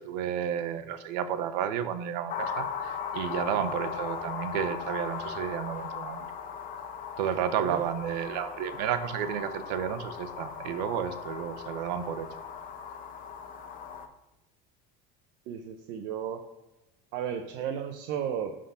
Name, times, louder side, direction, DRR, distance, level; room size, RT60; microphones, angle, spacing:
voice 1, 0.0-6.3 7.2-12.3, right 9 dB, 90° right, 10 dB, 0.9 m, -32 dB
sound 1, 2.3-14.1, left 7 dB, 40° left, 1.0 m, -38 dB
voice 2, 15.5-16.4 17.1-18.5, right 8 dB, 60° right, 5 dB, 0.8 m, -34 dB
11.0 x 3.8 x 5.7 m, 1.0 s
cardioid pair, 140°, 21 cm